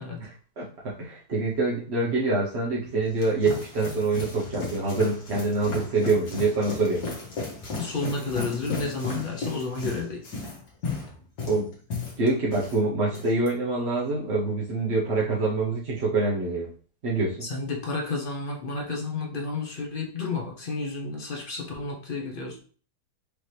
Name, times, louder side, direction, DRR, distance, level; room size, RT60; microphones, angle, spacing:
voice 1, 0.2-7.0 11.5-11.7 12.2-16.7 17.0-17.5, right 3 dB, 50° right, -5 dB, 1.0 m, -26 dB
sound 1, 2.8-12.8 13.1-13.5, left 3 dB, 75° left, 1.9 m, -35 dB
voice 2, 7.8-10.2 17.4-22.6, left 3 dB, 45° left, 0 dB, 0.7 m, -31 dB
4.9 x 2.9 x 3.2 m, 0.42 s
omnidirectional pair, 1.7 m